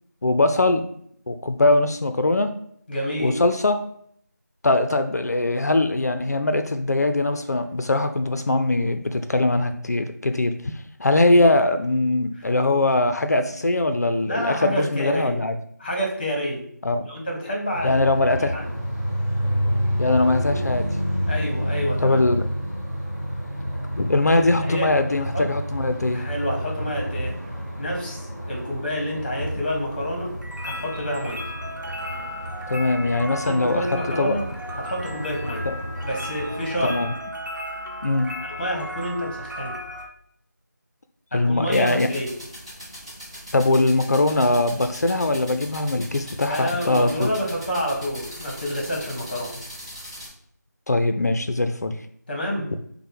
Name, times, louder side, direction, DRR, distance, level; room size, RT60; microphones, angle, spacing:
voice 1, 0.2-0.9 1.3-2.5 3.2-3.8 4.6-10.7 11.0-15.5 16.8-17.1 17.8-18.5 20.0-20.9 22.0-22.4 23.9-26.2 32.7-33.8 34.2-34.3 35.7-35.8 36.8-37.1 38.0-38.3 41.3-42.1 43.5-47.3 50.9-51.9, left 2 dB, 60° left, 7 dB, 0.4 m, -21 dB
voice 2, 2.9-3.4 12.4-12.5 14.3-15.4 15.8-16.7 17.0-18.0 18.5-18.7 21.3-22.2 24.2-25.5 26.1-27.4 27.8-31.5 33.3-34.4 34.8-35.7 36.0-37.0 38.4-39.8 41.3-42.3 46.5-49.6 52.3-52.7, equal, 30° left, 0 dB, 0.9 m, -28 dB
sound 1, 17.7-37.1, equal, 40° right, 1.4 m, -30 dB
sound 2, 29.4-40.1, equal, 85° right, 0.9 m, -36 dB
sound 3, 41.7-50.3, equal, 20° right, 1.1 m, -40 dB
5.4 x 2.1 x 3.4 m, 0.66 s
figure-of-eight pair, 175°, 10 cm